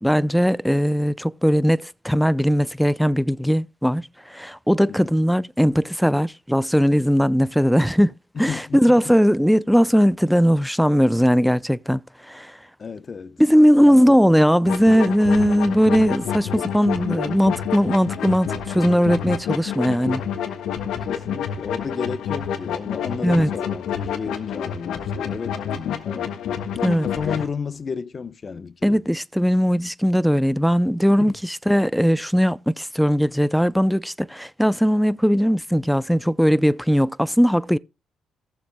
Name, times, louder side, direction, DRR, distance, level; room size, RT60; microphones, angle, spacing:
voice 1, 0.0-8.1 8.4-12.6 13.4-20.2 23.2-23.5 26.8-27.1 28.8-37.8, equal, ahead, 0.5 m, -19 dB
voice 2, 8.3-9.0 12.8-13.4 13.8-14.3 21.1-26.4 27.0-29.0 31.2-31.4, left 5 dB, 40° left, 0.8 m, -32 dB
sound 1, 14.7-27.5, left 8 dB, 80° left, 1.5 m, -28 dB
17.5 x 7.1 x 2.2 m
cardioid pair, 90°, 0 cm